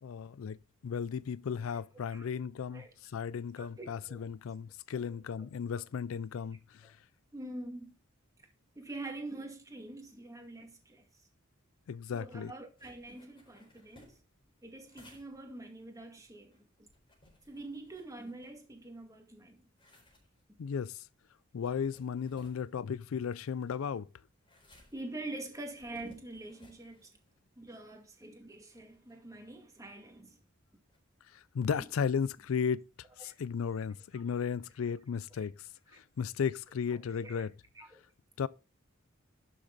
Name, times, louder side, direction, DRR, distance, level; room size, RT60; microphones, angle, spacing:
voice 1, 0.0-0.6 0.8-7.0 11.9-12.5 20.6-21.1 21.5-24.1 31.3-32.8 33.2-37.5 38.4-38.5, left 6 dB, 85° left, 0.4 m, -35 dB
voice 2, 3.6-4.3 4.9-5.0 5.4-5.5 5.7-5.8 6.8-6.9 7.3-7.9 8.8-11.3 12.1-14.2 14.6-16.9 17.5-19.6 24.9-27.1 27.6-30.4 31.8-31.9 33.2-33.4 35.9-36.0 37.2-37.5 37.7-38.0, right 2 dB, 15° right, 2.2 m, -45 dB
sound 1, 12.8-19.0 19.4-31.0, left 1 dB, 25° left, 4.3 m, -64 dB
11.5 x 6.7 x 4.0 m
head